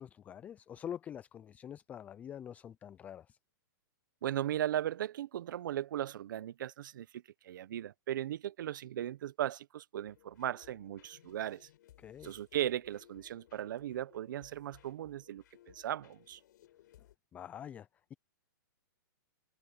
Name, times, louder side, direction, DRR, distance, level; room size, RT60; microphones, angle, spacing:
voice 1, 0.0-3.4 12.0-12.3 17.3-18.1, left 9 dB, 15° left, 0.4 m, -46 dB
voice 2, 4.2-11.7 12.2-16.4, right 12 dB, 65° right, 0.9 m, -37 dB
sound 1, 10.1-17.1, left 13 dB, 60° left, 5.1 m, -62 dB
hypercardioid pair, 150°, 11 cm